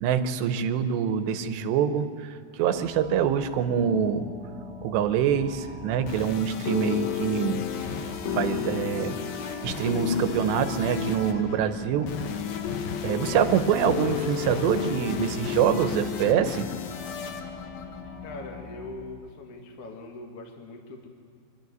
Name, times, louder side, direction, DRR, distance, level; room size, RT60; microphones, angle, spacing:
voice 1, 0.0-2.1 2.6-4.3 4.8-7.6 8.3-9.2 9.6-12.1 13.0-16.7, right 8 dB, 90° right, 9 dB, 3.1 m, -25 dB
sound 1, 2.7-19.0, left 2 dB, 20° left, 3.5 m, -43 dB
sound 2, 5.9-18.7, left 8 dB, 85° left, 1.5 m, -33 dB
voice 2, 18.2-21.1, left 2 dB, 50° left, 2 dB, 2.0 m, -41 dB
24.5 x 12.5 x 9.4 m, 2.2 s
omnidirectional pair, 4.8 m